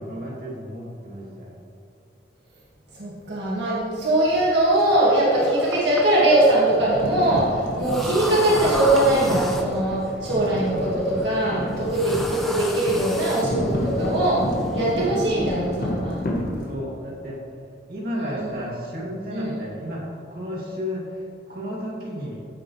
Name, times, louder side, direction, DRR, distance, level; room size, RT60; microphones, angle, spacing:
voice 1, 0.0-1.5 16.7-17.4 17.9-22.5, equal, 55° right, -5 dB, 2.6 m, -33 dB
voice 2, 3.0-14.4 14.7-16.2 18.1-18.5 19.3-19.6, right 1 dB, 75° right, -7 dB, 1.9 m, -21 dB
sound 1, 4.7-14.9, equal, ahead, 0.8 m, -35 dB
sound 2, 6.7-16.7, left 1 dB, 50° left, 1.7 m, -30 dB
15.0 x 7.7 x 3.2 m, 2.6 s
head